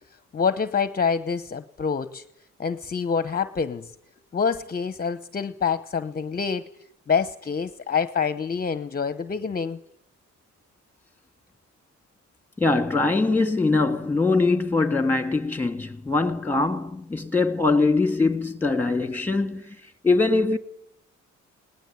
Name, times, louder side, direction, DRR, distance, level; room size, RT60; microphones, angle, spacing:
voice 1, 0.3-2.2 2.6-3.9 4.3-6.7 7.1-9.8, left 6 dB, 30° left, 1.0 m, -26 dB
voice 2, 12.6-19.8 20.0-20.6, left 3 dB, 5° left, 2.1 m, -22 dB
20.0 x 19.5 x 8.4 m
cardioid pair, 90°, 30 cm